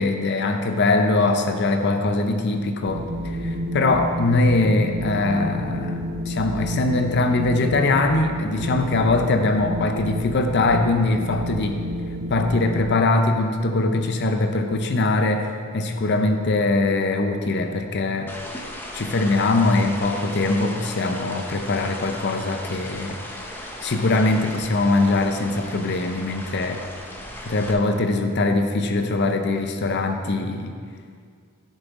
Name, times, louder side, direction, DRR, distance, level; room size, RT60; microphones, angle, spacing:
voice 1, 0.0-11.8 12.3-18.3 18.9-23.2 23.8-26.8 27.4-30.7, left 2 dB, 50° left, 6 dB, 0.6 m, -22 dB
Wind, 2.8-12.8, equal, 75° right, 0.9 m, -30 dB
sound 1, 18.3-27.7, left 1 dB, 10° left, 0.7 m, -36 dB
11.0 x 6.9 x 3.6 m, 2.1 s
head